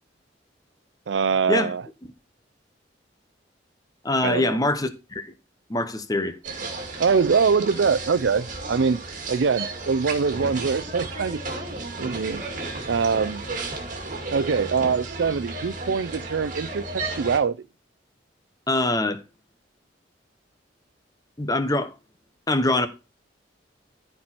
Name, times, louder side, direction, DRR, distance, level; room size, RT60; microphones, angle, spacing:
voice 1, 1.1-1.8 4.2-4.6 7.0-9.0 9.3-11.4 12.0-12.4 12.9-13.4 14.3-17.6, right 5 dB, 75° right, 0.5 m, -23 dB
voice 2, 4.0-5.3 5.7-6.4 18.7-19.2 21.4-21.9 22.5-22.9, left 2 dB, 20° left, 0.9 m, -23 dB
sound 1, 6.4-17.4, right 3 dB, 45° right, 2.2 m, -34 dB
13.5 x 4.6 x 4.4 m
head